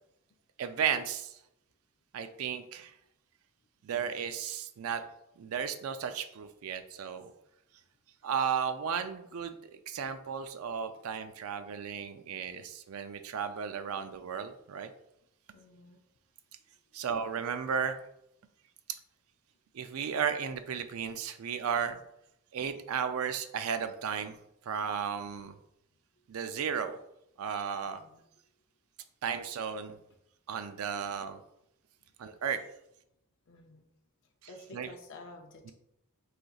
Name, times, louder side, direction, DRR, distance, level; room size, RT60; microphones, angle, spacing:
voice 1, 0.6-1.4 2.1-2.9 3.8-5.0 5.4-7.3 8.2-9.5 9.9-14.9 16.9-18.0 19.7-22.0 22.5-24.4 24.7-25.6 26.3-27.0 27.4-28.0 29.2-30.0 30.5-31.4 32.2-32.6 34.7-34.9, right 7 dB, 85° right, 10 dB, 0.4 m, -34 dB
voice 2, 15.5-16.0 16.9-17.1 27.8-28.2 32.1-32.2 33.5-33.9 34.2-35.7, left 2 dB, 60° left, 2 dB, 0.5 m, -51 dB
4.9 x 3.9 x 2.3 m, 0.79 s
head